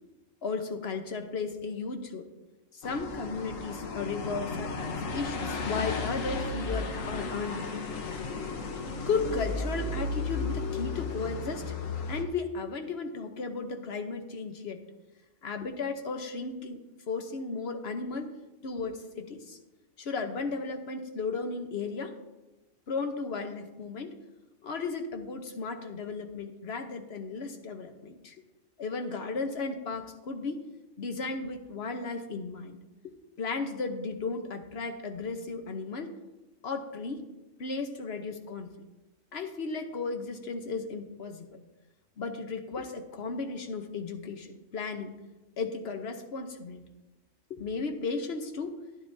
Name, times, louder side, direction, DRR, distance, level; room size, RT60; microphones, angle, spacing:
voice 1, 0.4-2.3 2.7-7.7 9.1-11.8 12.1-14.8 15.4-18.4 18.6-19.6 20.0-22.2 22.9-24.2 24.6-28.4 28.8-30.6 31.0-32.8 33.0-36.1 36.6-37.3 37.6-38.8 39.3-41.6 42.2-45.1 45.6-46.9 47.5-48.8, left 4 dB, 55° left, 6 dB, 1.1 m, -35 dB
sound 1, 2.8-12.2, left 3 dB, 80° left, 1.3 m, -34 dB
13.0 x 10.5 x 2.7 m, 1.0 s
omnidirectional pair, 1.4 m